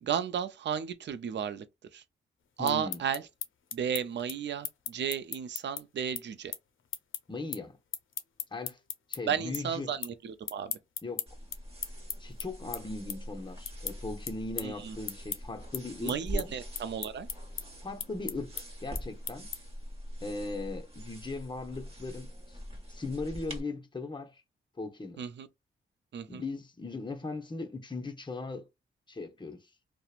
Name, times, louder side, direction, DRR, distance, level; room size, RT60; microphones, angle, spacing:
voice 1, 0.0-1.6 1.9-2.0 2.6-3.2 3.7-6.5 9.3-10.8 14.6-15.0 16.0-17.3 25.2-25.5 26.1-26.4, right 8 dB, 60° right, 0.4 m, -33 dB
sound 1, 2.5-9.2 9.5-10.2 10.4-19.8, left 8 dB, 75° left, 0.5 m, -39 dB
voice 2, 2.6-3.0 7.3-7.8 8.5-8.8 9.1-9.9 11.0-11.3 12.2-16.5 17.8-19.5 20.2-22.6 22.9-24.4 24.8-25.2 26.3-28.7 29.1-29.6, left 3 dB, 20° left, 0.7 m, -38 dB
sound 2, 11.3-23.6, equal, 30° right, 1.2 m, -43 dB
2.9 x 2.1 x 2.4 m
cardioid pair, 65°, 21 cm